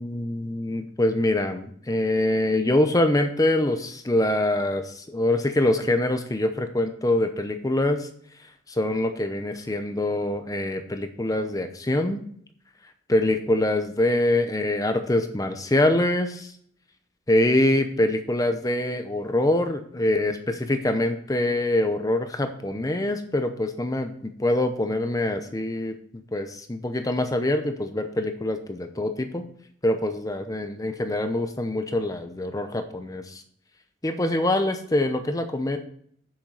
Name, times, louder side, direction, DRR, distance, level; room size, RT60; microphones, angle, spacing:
voice 1, 0.0-8.1 8.7-12.2 13.1-16.5 17.3-26.0 26.3-29.5 29.8-33.4 34.0-35.8, left 1 dB, 20° left, 8 dB, 0.7 m, -24 dB
7.6 x 7.3 x 5.5 m, 0.63 s
head